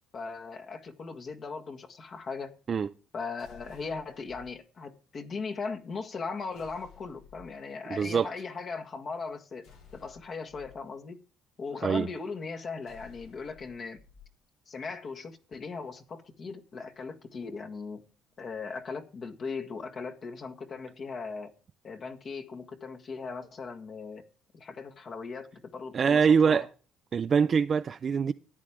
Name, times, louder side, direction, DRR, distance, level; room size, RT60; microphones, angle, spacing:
voice 1, 0.1-2.5 3.1-9.7 9.9-11.2 11.6-14.0 14.7-18.0 18.4-21.5 21.8-24.2 24.5-26.7, left 4 dB, 40° left, 1.7 m, -38 dB
sound 1, 3.4-4.5 6.5-7.6 9.6-10.7 12.8-14.3, left 6 dB, 85° left, 3.8 m, -55 dB
voice 2, 7.9-8.3 11.8-12.1 25.9-26.7 27.1-28.3, right 6 dB, 40° right, 0.4 m, -24 dB
13.5 x 9.9 x 3.6 m
cardioid pair, 110°, 0 cm